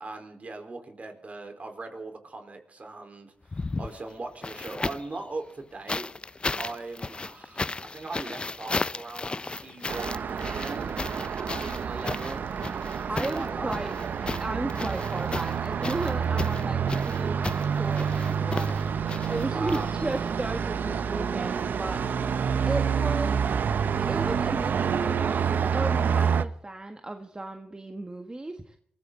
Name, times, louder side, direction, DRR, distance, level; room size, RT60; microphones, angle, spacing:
voice 1, 0.0-6.1 6.6-10.9 11.5-12.5 13.1-13.8 19.2-20.0, right 3 dB, 45° right, 5 dB, 4.3 m, -39 dB
sound 1, 3.4-5.2 5.9-20.4 21.5-21.6, left 3 dB, 30° left, 0.6 m, -35 dB
Traffic noise roadway noise, 9.9-26.4, right 7 dB, 70° right, 0.8 m, -28 dB
voice 2, 13.1-13.9 14.4-17.4 17.8-18.8 19.3-22.4 22.7-23.5 24.0-25.4 25.7-28.8, right 2 dB, 25° right, 6 dB, 1.6 m, -34 dB
23.5 x 15.0 x 4.0 m, 0.65 s
cardioid pair, 50°, 3 cm